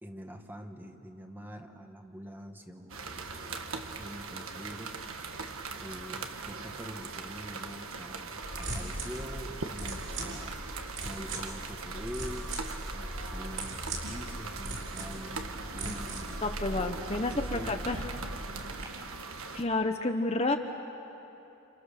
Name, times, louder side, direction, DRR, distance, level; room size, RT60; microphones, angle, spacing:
voice 1, 0.0-5.0 5.8-10.6 11.0-12.5 12.9-16.4 16.8-17.8, equal, 10° right, 4 dB, 1.4 m, -45 dB
sound 1, 2.9-19.6, right 4 dB, 80° right, 1.5 m, -41 dB
sound 2, 8.4-18.8, right 1 dB, 55° right, 5.0 m, -39 dB
voice 2, 16.4-18.1 19.5-20.6, left 2 dB, 30° left, 5 dB, 1.0 m, -30 dB
30.0 x 29.0 x 6.8 m, 3.0 s
head